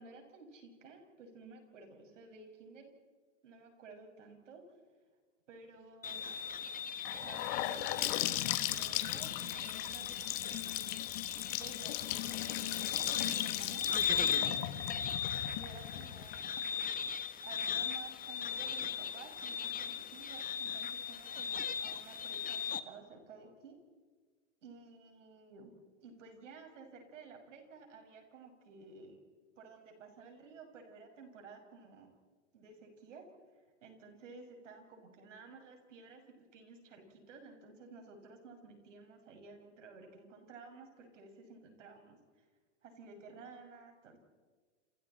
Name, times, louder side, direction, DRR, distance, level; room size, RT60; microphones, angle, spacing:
voice 1, 0.0-2.9 3.4-4.6 5.5-6.3 7.2-11.1 11.5-13.9 14.3-14.8 15.5-16.5 17.4-23.8 24.6-25.7 26.0-29.2 29.6-32.1 32.5-33.2 33.8-36.2 36.5-42.5 42.8-44.3, right 4 dB, 80° right, 4 dB, 6.4 m, -54 dB
sound 1, 6.0-22.8, left 7 dB, 25° left, 1.4 m, -38 dB
Gurgling / Sink (filling or washing) / Bathtub (filling or washing), 7.0-16.9, left 16 dB, 55° left, 1.7 m, -38 dB
29.0 x 28.5 x 4.4 m, 1.5 s
hypercardioid pair, 110°, 37 cm